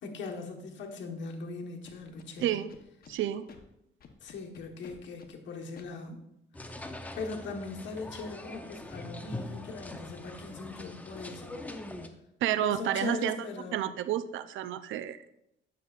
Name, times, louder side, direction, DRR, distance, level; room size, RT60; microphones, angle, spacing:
voice 1, 0.0-2.6 4.2-6.2 6.6-6.7 7.2-11.7 12.5-14.0, left 4 dB, 70° left, 2 dB, 1.2 m, -40 dB
Scratching (performance technique), 1.8-3.1 3.5-3.6 4.0-5.3 5.8-5.9, left 6 dB, 50° left, 0.9 m, -52 dB
voice 2, 3.1-3.5 12.4-15.2, right 11 dB, 75° right, 13 dB, 0.5 m, -30 dB
sound 1, 6.5-12.1, left 1 dB, 10° left, 0.6 m, -43 dB
9.1 x 6.5 x 2.4 m, 0.81 s
cardioid pair, 90°, 20 cm